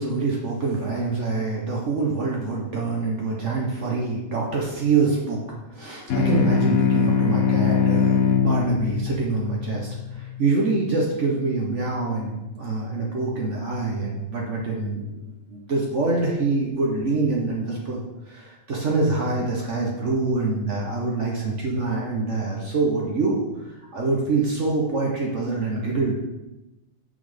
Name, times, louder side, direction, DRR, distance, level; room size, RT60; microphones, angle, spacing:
voice 1, 0.0-5.4 5.7-18.0 18.3-26.2, right 3 dB, 60° right, -2 dB, 1.5 m, -25 dB
sound 1, 6.1-11.0, left 7 dB, 80° left, 1.3 m, -22 dB
7.4 x 6.2 x 5.1 m, 1.0 s
omnidirectional pair, 1.4 m